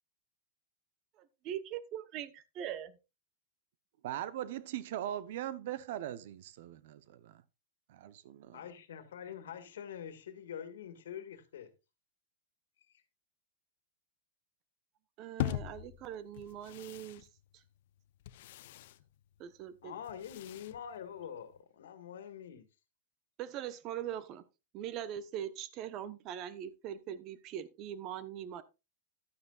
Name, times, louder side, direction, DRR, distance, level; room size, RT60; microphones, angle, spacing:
voice 1, 1.2-3.0 15.2-17.3 19.4-19.9 23.4-24.4 24.7-28.6, right 10 dB, 40° right, 0.9 m, -41 dB
voice 2, 4.0-7.4 7.9-8.6, right 12 dB, 65° right, 0.8 m, -40 dB
voice 3, 8.5-11.7 12.9-13.0 19.8-22.7, left 8 dB, 85° left, 1.8 m, -45 dB
sound 1, 15.4-21.6, left 14 dB, 65° left, 0.6 m, -43 dB
11.5 x 9.5 x 2.4 m
supercardioid pair, 135°, 0 cm